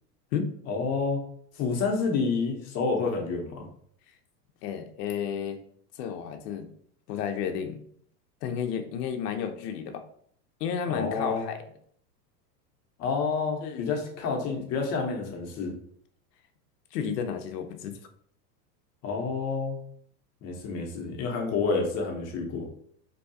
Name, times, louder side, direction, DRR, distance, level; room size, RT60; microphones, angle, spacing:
voice 1, 0.7-1.2 1.6-3.7 10.9-11.4 13.0-15.7 19.0-19.8 20.4-22.7, left 4 dB, 30° left, 1 dB, 0.7 m, -29 dB
voice 2, 4.6-5.6 6.0-6.7 7.1-7.8 8.4-10.0 10.6-11.6 13.6-13.9 16.9-18.0, left 7 dB, 75° left, 7 dB, 0.6 m, -32 dB
2.7 x 2.3 x 2.6 m, 0.63 s
hypercardioid pair, 115°, 49 cm